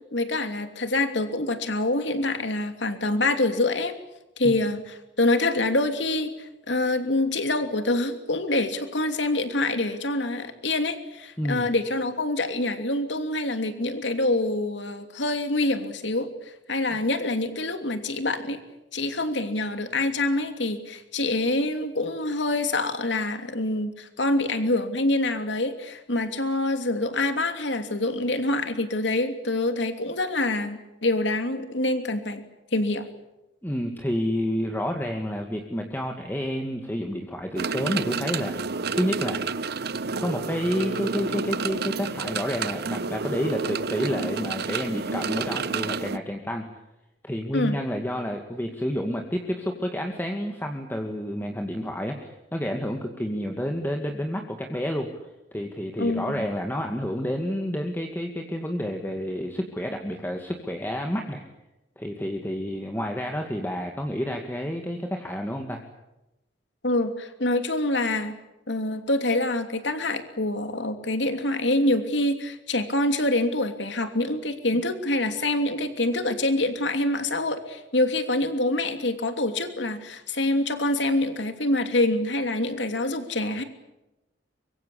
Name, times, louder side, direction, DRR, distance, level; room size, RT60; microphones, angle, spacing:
voice 1, 0.1-3.9 4.4-16.3 16.7-18.6 18.9-32.4 32.7-33.0 47.5-47.8 56.0-56.5 66.8-68.3 68.7-83.6, left 2 dB, 75° left, 7 dB, 3.0 m, -26 dB
voice 2, 11.4-11.7 16.9-17.0 33.6-39.4 40.2-46.6 47.2-55.1 55.5-61.4 62.0-65.8, equal, 10° left, 3 dB, 2.1 m, -29 dB
sound 1, 37.6-46.2, right 4 dB, 60° right, 1.0 m, -30 dB
24.0 x 23.5 x 8.5 m, 0.94 s
head